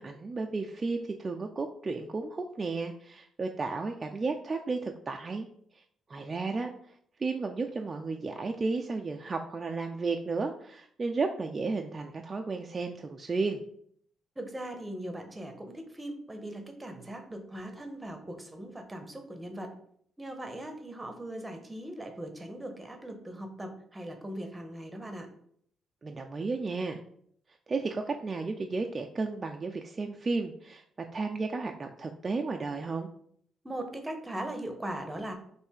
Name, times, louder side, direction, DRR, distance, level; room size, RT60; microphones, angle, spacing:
voice 1, 0.0-5.5 5.7-5.8 6.1-6.7 7.2-13.6 26.0-27.0 27.7-30.8 31.1-33.1, right 3 dB, 30° right, 3 dB, 0.3 m, -33 dB
voice 2, 14.4-19.7 20.2-25.3 33.6-35.3, right 1 dB, 15° right, 5 dB, 0.8 m, -39 dB
3.3 x 2.6 x 4.5 m, 0.65 s
cardioid pair, 90°, 0 cm